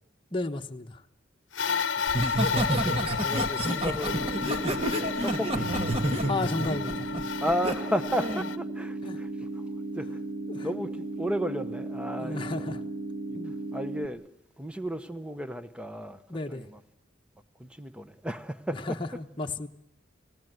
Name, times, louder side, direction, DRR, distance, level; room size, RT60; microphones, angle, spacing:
voice 1, 0.3-1.0 6.3-7.2 9.0-9.2 10.5-10.7 12.1-12.8 13.3-13.5 16.3-16.7 18.7-19.7, left 2 dB, 25° left, 1.1 m, -33 dB
sound 1, 1.5-8.6, left 6 dB, 80° left, 0.9 m, -32 dB
voice 2, 1.6-2.0 3.2-4.3 4.5-5.7 7.4-9.5 10.0-10.2 10.6-12.7 13.7-14.2 14.6-16.2 16.5-16.7 17.6-18.9, equal, 5° right, 1.0 m, -33 dB
Laughter, 2.1-7.7 8.2-8.5, right 1 dB, 30° right, 2.1 m, -29 dB
sound 2, 4.1-14.1, right 2 dB, 50° right, 1.0 m, -36 dB
29.5 x 17.5 x 8.0 m
head